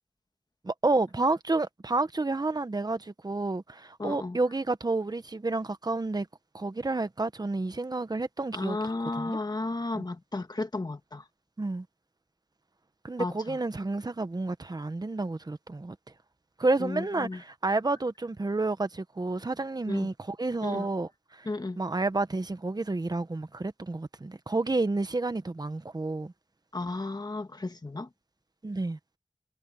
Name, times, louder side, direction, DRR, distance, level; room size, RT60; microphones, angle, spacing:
voice 1, 0.6-6.3 6.5-8.8 9.2-9.4 9.9-10.0 11.6-11.8 13.0-15.9 16.6-21.5 21.8-26.3 28.6-29.0, right 2 dB, 50° right, 1.3 m, -30 dB
voice 2, 4.0-4.4 8.5-11.2 13.2-13.6 16.8-17.4 19.9-20.1 20.6-20.9 21.5-21.8 26.7-28.1, left 2 dB, 50° left, 1.8 m, -33 dB
wide cardioid pair, 50°, 9 cm